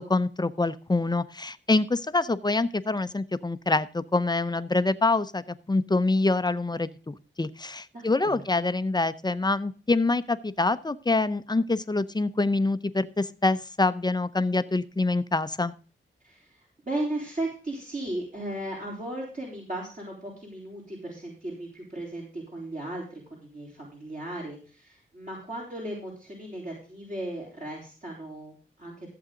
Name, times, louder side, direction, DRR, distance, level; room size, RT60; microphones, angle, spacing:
voice 1, 0.0-15.7, left 3 dB, 20° left, 14 dB, 0.7 m, -26 dB
voice 2, 7.9-8.4 16.2-29.1, right 1 dB, 40° right, -3 dB, 3.9 m, -36 dB
15.0 x 7.9 x 3.8 m, 0.38 s
wide cardioid pair, 100°, 20 cm